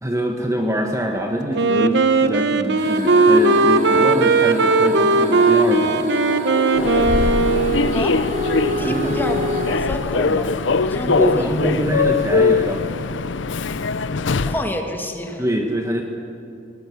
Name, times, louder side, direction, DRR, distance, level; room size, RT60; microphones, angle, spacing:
voice 1, 0.0-6.1 8.8-9.2 11.1-13.0 15.4-16.0, equal, 15° right, 3 dB, 1.4 m, -24 dB
Wind instrument woodwind instrument, 1.5-8.2, right 3 dB, 65° right, 1.1 m, -17 dB
sound 1, 2.8-9.8, equal, 45° right, 4.5 m, -26 dB
Human voice / Subway metro underground, 6.7-14.7, left 4 dB, 75° left, 0.6 m, -22 dB
voice 2, 7.9-8.2 8.8-10.5 10.8-11.7 14.5-15.4, left 1 dB, 10° left, 3 dB, 2.3 m, -28 dB
20.0 x 19.0 x 9.6 m, 2.6 s
head